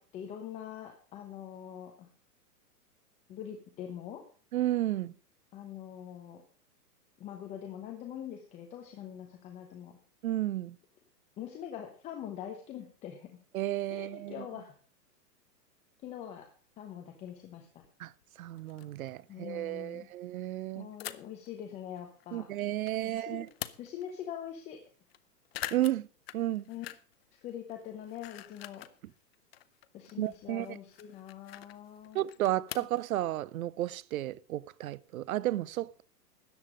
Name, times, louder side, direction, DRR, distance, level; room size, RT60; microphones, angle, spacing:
voice 1, 0.0-2.1 3.3-4.2 5.5-6.4 7.2-10.0 11.4-13.3 13.9-14.7 16.0-16.5 16.8-17.8 19.3-20.1 20.8-22.5 23.0-23.4 23.8-24.8 26.7-26.9 27.4-28.9 29.9-32.2, left 9 dB, 15° left, 0.9 m, -43 dB
voice 2, 4.5-5.1 10.2-10.8 13.5-14.5 18.0-18.1 18.4-20.9 22.3-23.5 25.7-26.1 26.3-26.7 30.2-30.8 32.1-36.0, right 14 dB, 60° right, 0.7 m, -32 dB
sound 1, 16.1-16.2 17.3-17.4 17.8-17.9 18.2-18.3 18.6-19.1 21.0-21.5 22.0-23.0 23.3-24.1 24.5-24.6 24.8-25.2 25.5-27.2 27.5-29.0 29.3-33.0, left 13 dB, 40° left, 0.7 m, -45 dB
13.5 x 9.5 x 4.9 m
hypercardioid pair, 160°, 48 cm